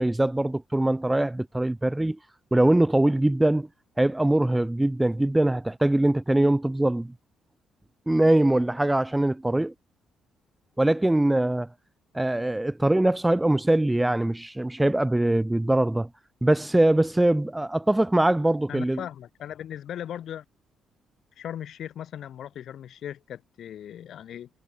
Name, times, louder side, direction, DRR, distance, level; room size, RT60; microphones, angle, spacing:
voice 1, 0.0-2.2 2.5-3.7 4.0-7.1 8.1-9.7 10.8-11.7 12.1-16.1 16.4-19.0, right 1 dB, 10° right, 0.4 m, -22 dB
voice 2, 18.7-20.4 21.4-24.5, left 10 dB, 70° left, 2.9 m, -38 dB
cardioid pair, 85°, 0 cm